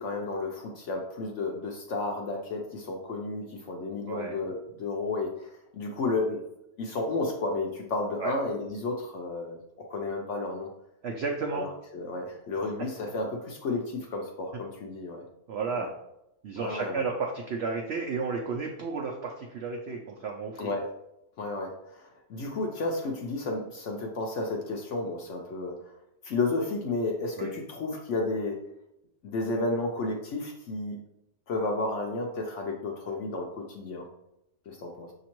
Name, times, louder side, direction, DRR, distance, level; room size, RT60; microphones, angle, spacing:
voice 1, 0.0-6.4 6.8-9.6 9.9-10.7 11.5-15.2 15.8-15.9 16.6-17.0 20.6-20.9 21.4-25.7 26.2-28.6 29.2-31.0 31.5-34.0 34.7-35.1, left 2 dB, 65° left, 1 dB, 0.8 m, -32 dB
voice 2, 11.0-11.7 15.5-15.9 16.4-20.7 27.4-27.5, right 4 dB, 80° right, 1 dB, 0.5 m, -32 dB
6.1 x 2.8 x 2.9 m, 0.84 s
omnidirectional pair, 1.7 m